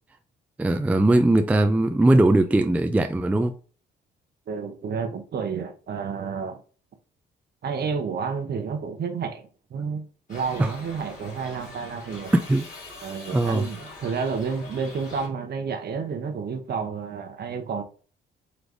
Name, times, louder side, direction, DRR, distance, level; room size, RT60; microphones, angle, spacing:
voice 1, 0.6-3.5 10.6-10.7 12.3-12.7 13.3-13.7, right 1 dB, 5° right, 0.4 m, -20 dB
voice 2, 4.5-6.6 7.6-10.0 10.3-12.3 13.0-17.8, right 5 dB, 55° right, 0.9 m, -30 dB
Shout / Livestock farm animals working animals, 10.3-15.3, left 2 dB, 40° left, 2.2 m, -43 dB
3.9 x 3.3 x 3.3 m
cardioid pair, 90°, 20 cm